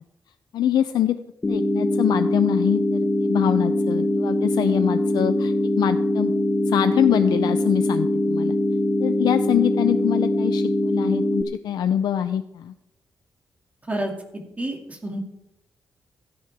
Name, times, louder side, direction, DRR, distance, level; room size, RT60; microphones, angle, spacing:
voice 1, 0.5-1.2 1.5-6.3 6.7-8.6 9.0-12.7, left 10 dB, 85° left, 10 dB, 0.5 m, -24 dB
sound 1, 1.4-11.4, left 1 dB, 20° left, 1.1 m, -22 dB
voice 2, 14.6-15.2, right 1 dB, 20° right, 1 dB, 2.3 m, -28 dB
16.0 x 11.5 x 3.5 m, 0.88 s
wide cardioid pair, 130°, 7 cm